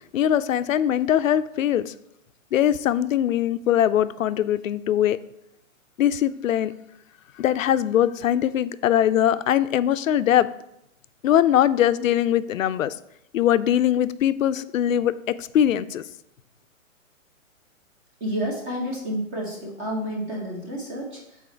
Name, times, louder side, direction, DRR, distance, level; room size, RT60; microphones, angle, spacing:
voice 1, 0.1-1.9 2.5-5.2 6.0-6.7 7.4-10.5 11.2-13.0 13.3-16.0, left 10 dB, 70° left, 14 dB, 0.5 m, -21 dB
voice 2, 18.2-21.4, equal, 20° right, -2 dB, 1.1 m, -30 dB
6.2 x 4.1 x 4.5 m, 0.80 s
hypercardioid pair, 145°, 41 cm